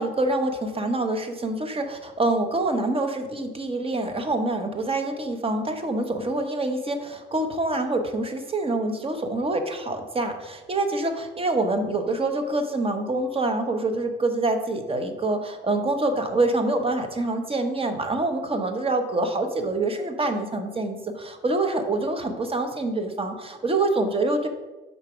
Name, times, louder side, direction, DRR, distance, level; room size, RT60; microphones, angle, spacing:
voice 1, 0.0-24.5, right 2 dB, 30° right, 6 dB, 0.8 m, -26 dB
5.7 x 4.0 x 4.8 m, 1.2 s
cardioid pair, 90°, 20 cm